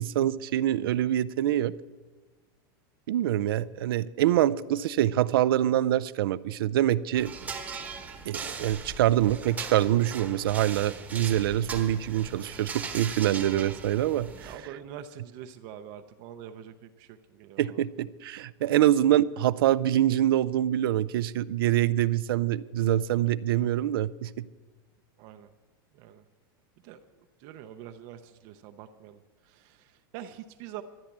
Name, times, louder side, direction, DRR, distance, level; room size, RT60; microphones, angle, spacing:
voice 1, 0.0-1.7 3.1-7.3 8.3-14.5 17.6-24.4, right 12 dB, 85° right, 16 dB, 0.5 m, -25 dB
sound 1, 7.1-14.6, right 5 dB, 15° right, 1.0 m, -39 dB
voice 2, 14.4-17.8 25.2-25.5 25.9-26.2 26.8-27.0 27.4-30.8, right 10 dB, 35° right, 8 dB, 0.6 m, -45 dB
13.5 x 9.7 x 7.3 m, 1.3 s
supercardioid pair, 170°, 12 cm